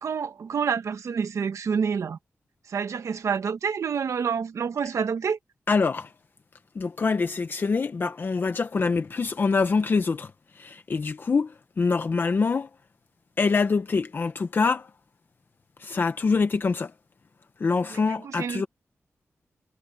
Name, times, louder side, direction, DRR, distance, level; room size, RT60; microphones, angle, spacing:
voice 1, 0.0-2.2 2.7-5.4 17.9-18.7, right 6 dB, 85° right, 1.4 m, -28 dB
voice 2, 5.7-6.1 6.8-10.3 10.6-12.7 13.4-14.9 15.8-16.9 17.6-18.7, left 4 dB, 45° left, 0.8 m, -25 dB
wide cardioid pair, 155°, 5 cm